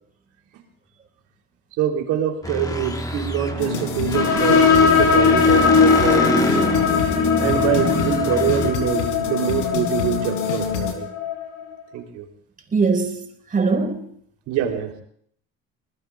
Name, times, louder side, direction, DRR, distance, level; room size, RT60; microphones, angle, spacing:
voice 1, 1.8-6.7 7.4-11.1 11.9-12.3 14.5-14.9, right 10 dB, 70° right, 2 dB, 3.5 m, -25 dB
sound 1, 2.4-8.7, left 1 dB, 10° left, 1.5 m, -27 dB
sound 2, 3.6-10.9, left 7 dB, 90° left, 3.3 m, -28 dB
sound 3, 4.1-11.4, left 5 dB, 65° left, 4.8 m, -19 dB
voice 2, 12.7-13.2 13.5-14.1, right 4 dB, 25° right, 2 dB, 4.7 m, -20 dB
24.5 x 20.5 x 2.4 m, 0.62 s
supercardioid pair, 95°, 31 cm